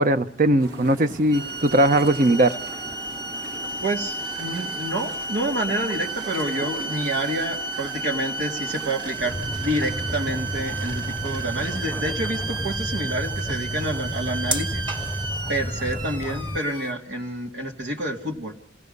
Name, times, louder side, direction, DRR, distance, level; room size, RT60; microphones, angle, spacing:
voice 1, 0.0-2.5, right 1 dB, 50° right, 10 dB, 1.0 m, -19 dB
sound 1, 0.6-12.8, right 2 dB, 65° right, 2.3 m, -41 dB
sound 2, 1.3-16.9, right 3 dB, 25° right, 2.0 m, -32 dB
sound 3, 2.2-16.6, left 1 dB, 10° left, 0.8 m, -34 dB
voice 2, 3.8-14.9 15.5-18.5, right 1 dB, 80° right, 1 dB, 2.5 m, -28 dB
28.5 x 18.0 x 5.5 m, 0.67 s
head